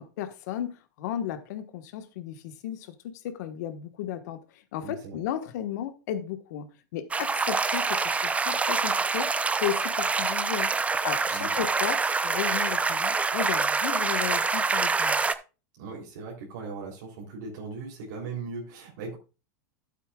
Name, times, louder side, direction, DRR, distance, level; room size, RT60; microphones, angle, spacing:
voice 1, 0.0-4.4 4.7-9.3 9.6-15.3, left 10 dB, 70° left, 1.4 m, -34 dB
voice 2, 4.8-5.2 11.3-11.5 15.8-19.2, right 4 dB, 75° right, 3.4 m, -38 dB
sound 1, 7.1-15.3, right 4 dB, 15° right, 0.6 m, -26 dB
12.0 x 8.3 x 2.4 m
supercardioid pair, 115°, 10 cm